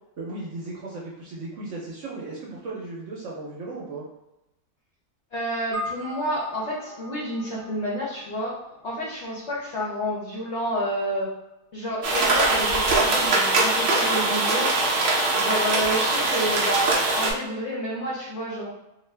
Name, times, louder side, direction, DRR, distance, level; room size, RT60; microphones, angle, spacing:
voice 1, 0.2-4.0, right 2 dB, 65° right, -4 dB, 0.8 m, -36 dB
voice 2, 5.3-8.5 8.8-11.3 11.7-14.7 15.3-18.7, equal, 60° left, -6 dB, 0.7 m, -29 dB
sound 1, 5.7-10.3, left 1 dB, 10° right, 0.8 m, -40 dB
sound 2, 12.0-17.3, right 2 dB, 85° right, 0.5 m, -22 dB
2.5 x 2.3 x 3.2 m, 0.92 s
omnidirectional pair, 1.7 m